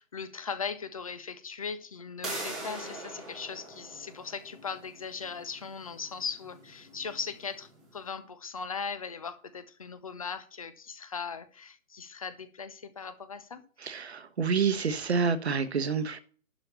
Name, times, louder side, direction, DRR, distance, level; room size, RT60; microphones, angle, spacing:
voice 1, 0.0-13.6, left 5 dB, 25° left, 0.7 m, -39 dB
sound 1, 2.2-7.8, right 1 dB, ahead, 0.9 m, -43 dB
voice 2, 13.8-16.2, right 5 dB, 50° right, 1.2 m, -28 dB
11.5 x 4.4 x 6.7 m
figure-of-eight pair, 150°, 42 cm